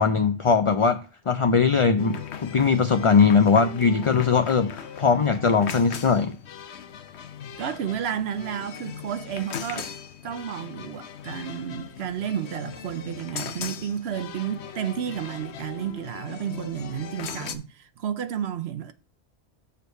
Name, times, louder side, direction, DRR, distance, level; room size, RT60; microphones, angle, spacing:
voice 1, 0.0-6.4, left 5 dB, 45° left, 0.4 m, -20 dB
sound 1, 2.0-17.6, left 8 dB, 75° left, 1.0 m, -38 dB
voice 2, 7.6-9.9 10.2-18.9, right 9 dB, 70° right, 0.9 m, -31 dB
6.7 x 4.7 x 5.2 m
omnidirectional pair, 1.1 m